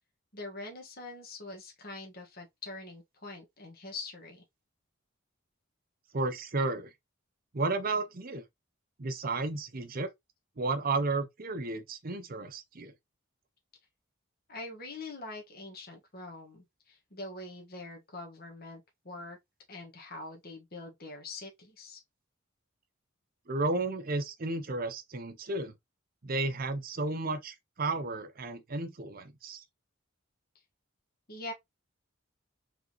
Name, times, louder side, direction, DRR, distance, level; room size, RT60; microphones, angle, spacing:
voice 1, 0.3-4.4 14.5-18.8 19.0-19.4 19.7-22.0 31.3-31.5, left 2 dB, 50° left, 1.6 m, -44 dB
voice 2, 6.1-6.9 7.5-8.4 9.0-10.1 10.6-12.9 23.5-25.7 26.2-29.6, right 3 dB, 45° right, 0.7 m, -33 dB
4.7 x 3.6 x 3.0 m
head